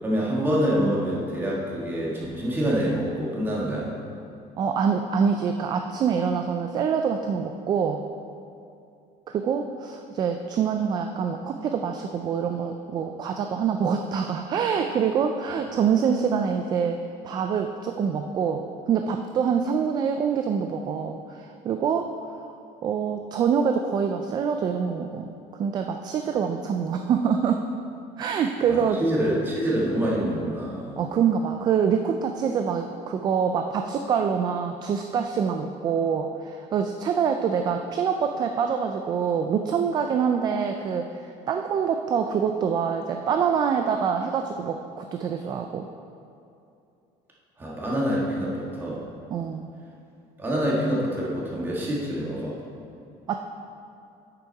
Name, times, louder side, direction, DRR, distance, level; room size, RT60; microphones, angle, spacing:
voice 1, 0.0-3.9 28.7-31.0 47.6-49.0 50.4-52.6, equal, 15° right, -5 dB, 1.6 m, -26 dB
voice 2, 4.6-8.0 9.3-22.1 22.4-22.5 22.8-27.6 28.2-29.0 31.0-45.9 49.3-49.7 53.3-53.4, right 6 dB, 30° right, 5 dB, 0.3 m, -25 dB
8.4 x 6.9 x 4.6 m, 2.6 s
cardioid pair, 175°, 14 cm